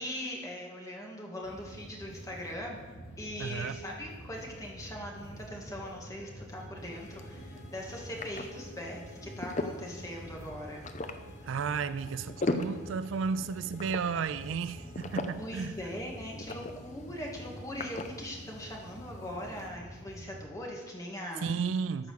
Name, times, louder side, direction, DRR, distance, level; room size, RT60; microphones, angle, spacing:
voice 1, 0.0-2.8 3.2-10.9 15.4-21.5, equal, 15° left, -1 dB, 1.8 m, -41 dB
sound 1, 1.4-20.4, equal, 80° left, 3.5 m, -48 dB
voice 2, 3.4-3.8 11.4-15.8 21.4-22.1, right 5 dB, 70° right, 14 dB, 0.4 m, -33 dB
Bowed string instrument, 6.6-15.1, equal, 60° left, 3.2 m, -57 dB
sound 2, 6.8-19.7, left 2 dB, 35° left, 0.6 m, -41 dB
13.5 x 4.9 x 6.5 m, 1.3 s
head